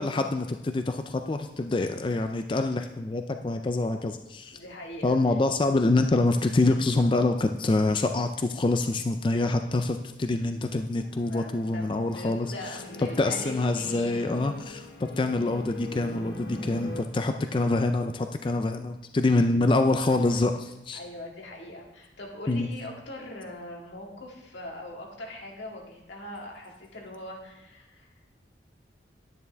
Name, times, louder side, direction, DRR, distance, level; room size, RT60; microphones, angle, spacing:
voice 1, 0.0-4.6 5.0-12.5 13.2-21.0 22.5-22.7, left 2 dB, 30° left, 7 dB, 0.4 m, -26 dB
voice 2, 4.5-5.4 11.3-11.9 12.1-14.2 20.9-28.1, left 1 dB, 90° left, -1 dB, 2.0 m, -41 dB
sound 1, 10.5-17.0, left 2 dB, 65° left, 1.2 m, -41 dB
10.5 x 9.5 x 3.4 m, 0.94 s
head